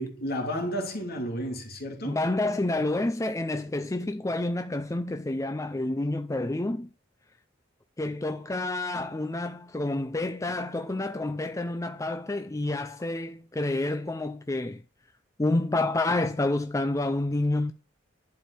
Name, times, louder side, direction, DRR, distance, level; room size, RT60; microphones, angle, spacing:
voice 1, 0.0-2.2, equal, 55° left, 3.0 m, -32 dB
voice 2, 2.0-6.9 8.0-14.8 15.4-17.7, left 2 dB, 15° left, 0.5 m, -29 dB
11.5 x 4.7 x 8.2 m
head